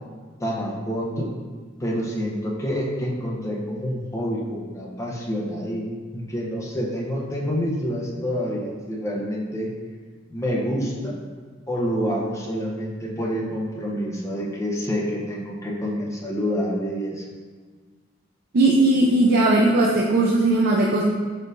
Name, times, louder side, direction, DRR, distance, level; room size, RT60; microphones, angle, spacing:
voice 1, 0.4-1.3 1.8-9.7 10.3-11.1 11.7-17.2, equal, 15° left, -4 dB, 0.7 m, -27 dB
voice 2, 18.5-21.0, right 2 dB, 55° right, -3 dB, 0.4 m, -18 dB
4.6 x 4.4 x 2.6 m, 1.5 s
head